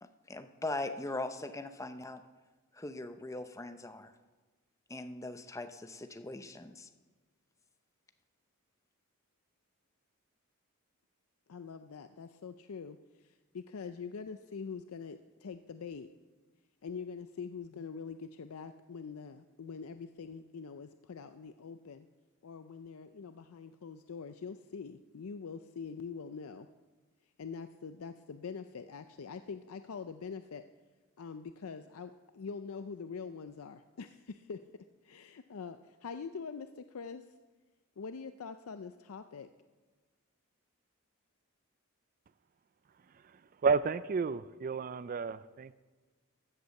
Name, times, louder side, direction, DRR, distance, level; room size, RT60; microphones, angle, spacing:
voice 1, 0.0-2.2 2.7-4.1 4.9-6.9, left 2 dB, 15° left, 9 dB, 0.6 m, -40 dB
voice 2, 11.5-16.1 16.8-22.1 22.4-26.7 27.4-30.6 31.2-34.6 35.0-37.2 38.0-39.5, left 5 dB, 70° left, 10 dB, 0.5 m, -44 dB
voice 3, 43.6-45.7, right 5 dB, 40° right, 15 dB, 0.3 m, -31 dB
14.5 x 8.1 x 7.0 m, 1.3 s
head